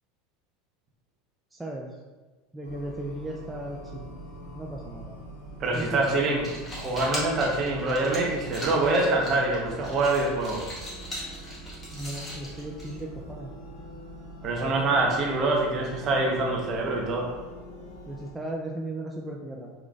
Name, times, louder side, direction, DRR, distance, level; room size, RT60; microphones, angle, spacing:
voice 1, 1.5-1.9 2.5-4.2 4.5-5.2 5.7-6.3 11.9-13.5 18.1-19.7, right 1 dB, 10° right, -2 dB, 0.4 m, -36 dB
sound 1, 2.6-18.3, right 1 dB, 85° left, 0.9 m, -43 dB
voice 2, 5.6-6.4 6.7-10.7 14.4-17.3, right 2 dB, 40° right, 0 dB, 0.9 m, -25 dB
sound 2, 6.3-13.3, left 1 dB, 25° left, 1.3 m, -40 dB
3.8 x 3.0 x 2.4 m, 1.2 s
hypercardioid pair, 100°, 0 cm